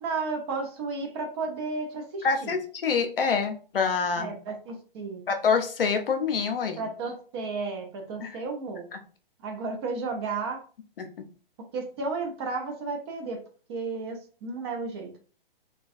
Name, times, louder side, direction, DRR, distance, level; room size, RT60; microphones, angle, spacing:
voice 1, 0.0-2.6 4.2-5.2 6.8-8.9 9.4-10.6 11.7-13.4 13.7-15.2, right 4 dB, 30° right, 4 dB, 0.5 m, -33 dB
voice 2, 2.2-4.3 5.3-6.8 8.2-8.4 8.9-9.0 11.0-11.1, left 5 dB, 70° left, 6 dB, 0.6 m, -26 dB
2.3 x 2.2 x 2.5 m, 0.39 s
figure-of-eight pair, 125°, 29 cm